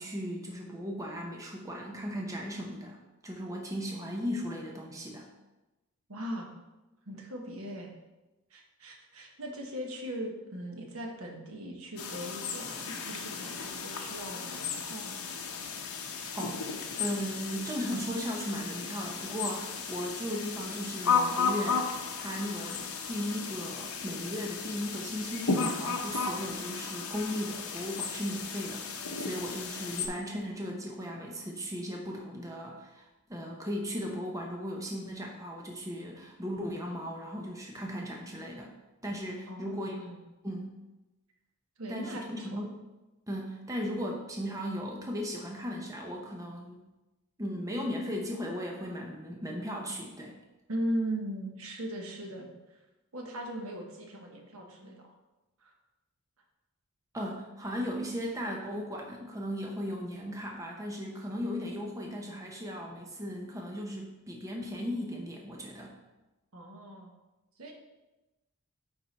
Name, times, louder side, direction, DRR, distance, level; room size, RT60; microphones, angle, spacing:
voice 1, 0.0-5.3 16.3-16.6 17.0-21.9 22.2-38.7 39.0-40.1 40.4-40.7 41.9-42.8 43.3-46.8 47.4-50.3 57.1-65.9, equal, 15° right, -1 dB, 0.8 m, -37 dB
voice 2, 6.1-6.5 7.1-7.9 8.5-15.1 39.5-40.2 41.8-42.6 50.7-52.8 53.1-55.1 55.6-55.7 66.5-67.1 67.6-67.7, right 1 dB, 70° right, 1 dB, 1.2 m, -39 dB
sound 1, 12.0-30.1, left 5 dB, 75° left, 0.8 m, -34 dB
9.0 x 3.9 x 4.1 m, 1.1 s
head